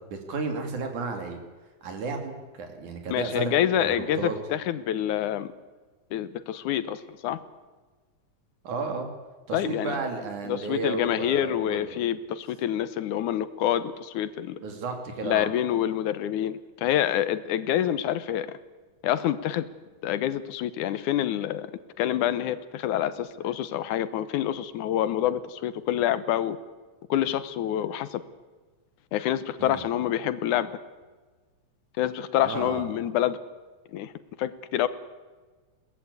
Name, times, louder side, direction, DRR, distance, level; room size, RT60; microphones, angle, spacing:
voice 1, 0.1-1.4 1.8-4.3 8.6-9.1 9.5-11.9 14.6-15.5 29.6-29.8 32.5-32.8, right 4 dB, 75° right, 4 dB, 4.4 m, -33 dB
voice 2, 3.1-5.5 6.1-7.4 9.5-10.0 10.4-14.6 15.2-18.6 19.0-19.7 20.0-21.7 22.0-26.6 27.1-28.2 29.1-30.7 32.0-33.4 33.9-34.1 34.4-34.9, left 11 dB, 90° left, 14 dB, 2.5 m, -27 dB
22.5 x 18.5 x 8.4 m, 1.3 s
omnidirectional pair, 3.5 m